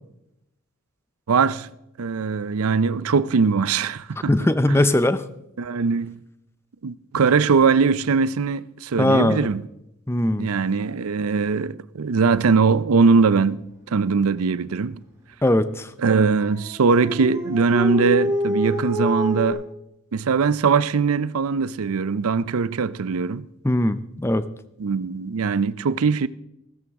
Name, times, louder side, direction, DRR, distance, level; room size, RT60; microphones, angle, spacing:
voice 1, 1.3-1.7 2.0-4.3 4.7-4.8 5.6-6.2 6.8-9.6 10.4-13.6 13.9-15.0 16.0-19.6 20.1-23.5 24.8-26.3, right 5 dB, 85° right, 0.5 m, -21 dB
voice 2, 4.3-5.2 9.0-9.5 10.1-10.5 15.4-15.9 23.6-24.4, left 1 dB, 10° left, 0.5 m, -20 dB
Dog, 16.1-19.5, equal, 15° right, 4.9 m, -27 dB
15.5 x 14.0 x 3.6 m
head